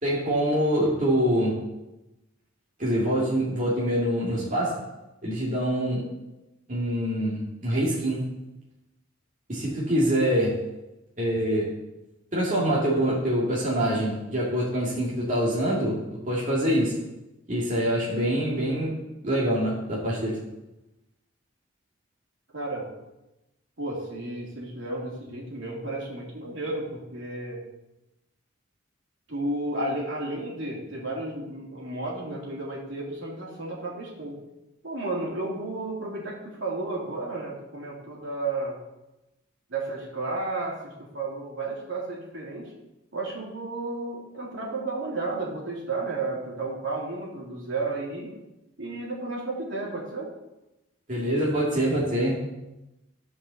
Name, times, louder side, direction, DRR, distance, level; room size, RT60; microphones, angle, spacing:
voice 1, 0.0-1.6 2.8-4.9 5.2-6.1 6.7-8.2 9.5-10.6 11.2-11.7 12.3-17.0 17.5-19.0 19.2-20.4 51.1-52.4, equal, 35° right, -6 dB, 2.3 m, -25 dB
voice 2, 22.5-22.8 23.8-27.6 29.3-34.4 34.8-38.7 39.7-42.7 43.1-48.3 48.8-50.3, right 2 dB, 60° right, -4 dB, 3.2 m, -32 dB
12.5 x 5.5 x 7.0 m, 0.98 s
head